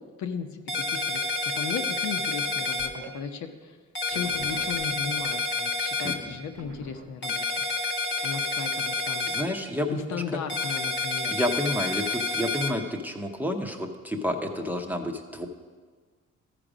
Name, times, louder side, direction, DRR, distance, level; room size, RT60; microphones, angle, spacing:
voice 1, 0.2-0.6 0.9-1.2 1.5-3.8 4.1-7.6 8.2-9.3 9.9-11.3, left 6 dB, 70° left, 6 dB, 0.8 m, -35 dB
sound 1, 0.7-2.9 4.0-6.2 7.2-9.4 10.5-12.7, left 3 dB, 40° left, 1.2 m, -29 dB
sound 2, 2.8-3.1 4.1-5.2 6.6-7.1, right 2 dB, 85° right, 1.6 m, -45 dB
voice 2, 9.2-10.4 11.3-15.5, left 1 dB, 5° right, 4 dB, 0.8 m, -30 dB
14.0 x 5.0 x 5.0 m, 1.5 s
cardioid pair, 90°, 30 cm